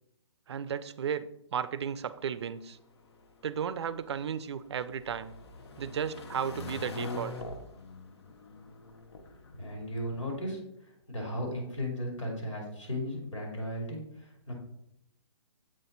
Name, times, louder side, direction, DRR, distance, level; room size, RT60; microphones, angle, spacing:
voice 1, 0.5-2.8 3.4-5.3 5.8-7.4, right 7 dB, 60° right, 15 dB, 0.4 m, -34 dB
sound 1, 1.9-10.3, left 3 dB, 60° left, 0.9 m, -45 dB
voice 2, 9.6-10.6 11.1-14.5, equal, 85° left, 0 dB, 2.8 m, -35 dB
7.6 x 4.2 x 3.9 m, 0.78 s
hypercardioid pair, 160°, 16 cm